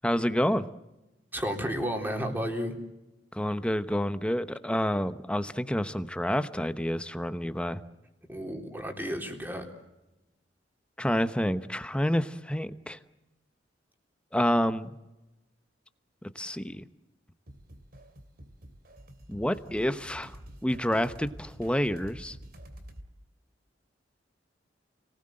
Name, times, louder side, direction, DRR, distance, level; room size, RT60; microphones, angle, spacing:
voice 1, 0.0-0.6 3.3-7.8 11.0-13.0 14.3-14.9 16.3-16.8 19.3-20.4 20.6-22.4, equal, 5° left, 12 dB, 1.0 m, -28 dB
voice 2, 1.3-2.7 8.3-9.7, equal, 10° right, 3 dB, 3.7 m, -32 dB
sound 1, 17.5-23.1, equal, 55° right, 2.9 m, -48 dB
30.0 x 19.5 x 7.8 m, 1.0 s
head